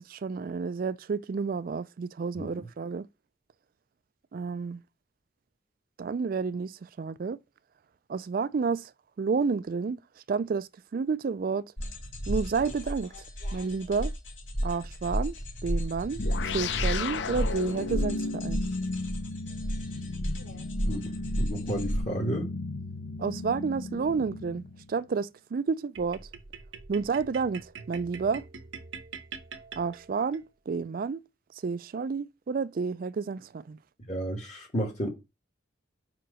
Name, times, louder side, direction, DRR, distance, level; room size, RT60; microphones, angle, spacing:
voice 1, 0.0-3.1 4.3-4.8 6.0-6.7 7.0-7.4 8.1-8.9 9.2-10.0 10.3-11.7 12.3-13.1 13.5-14.1 14.6-15.3 15.6-18.6 23.2-26.2 26.9-28.4 29.8-31.2 31.6-33.8, right 5 dB, 50° right, 0.3 m, -30 dB
sound 1, 11.8-22.0, equal, 85° left, 2.3 m, -33 dB
sound 2, 16.2-25.0, left 3 dB, 70° left, 0.5 m, -35 dB
voice 2, 21.4-22.5 34.1-35.1, right 1 dB, 35° left, 1.5 m, -32 dB
sound 3, 25.9-30.4, right 5 dB, 85° right, 1.0 m, -44 dB
5.1 x 4.6 x 6.2 m
head